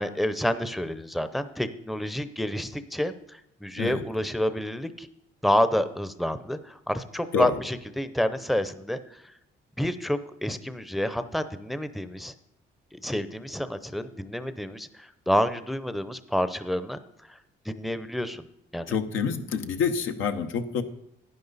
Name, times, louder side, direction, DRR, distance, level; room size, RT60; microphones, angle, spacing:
voice 1, 0.0-5.1 5.4-9.2 9.8-12.3 12.9-17.0 17.3-17.4 17.6-18.5 18.7-18.9, equal, ahead, 11 dB, 0.6 m, -29 dB
voice 2, 18.9-20.8, left 6 dB, 80° left, 6 dB, 1.0 m, -27 dB
11.0 x 10.0 x 4.1 m, 0.81 s
cardioid pair, 90°, 20 cm